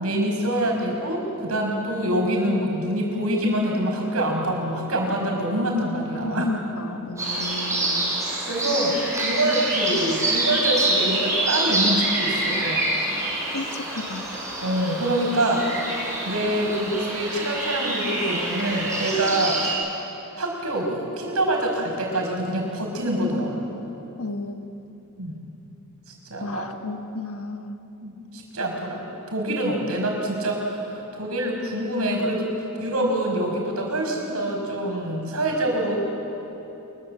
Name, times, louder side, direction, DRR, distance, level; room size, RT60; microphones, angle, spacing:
voice 1, 0.0-6.5 8.4-12.9 14.6-19.6 20.4-23.7 25.2-25.4 26.1-26.7 28.0-29.0 29.3-32.5 32.8-36.0, right 1 dB, 85° right, 0 dB, 5.9 m, -25 dB
voice 2, 6.2-8.1 13.5-14.3 24.2-24.7 26.4-27.8, left 2 dB, 75° left, 7 dB, 1.3 m, -33 dB
sound 1, 7.2-19.7, right 2 dB, 15° right, 7.7 m, -26 dB
25.0 x 22.5 x 7.8 m, 3.0 s
head